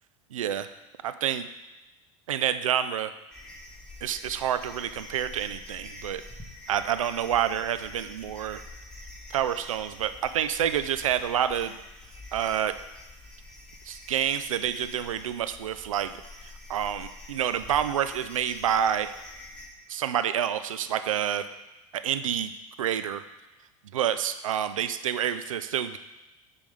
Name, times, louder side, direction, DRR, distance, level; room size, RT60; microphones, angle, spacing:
voice 1, 0.3-0.7 1.0-1.5 2.3-3.1 4.0-6.2 6.7-8.6 9.3-11.8 12.3-12.7 13.9-19.1 19.9-21.4 21.9-22.5 22.8-23.2 23.9-26.0, right 9 dB, 90° right, 11 dB, 0.4 m, -28 dB
sound 1, 3.3-19.7, left 2 dB, 5° left, 1.9 m, -46 dB
9.2 x 3.5 x 5.4 m, 1.0 s
hypercardioid pair, 80°, 17 cm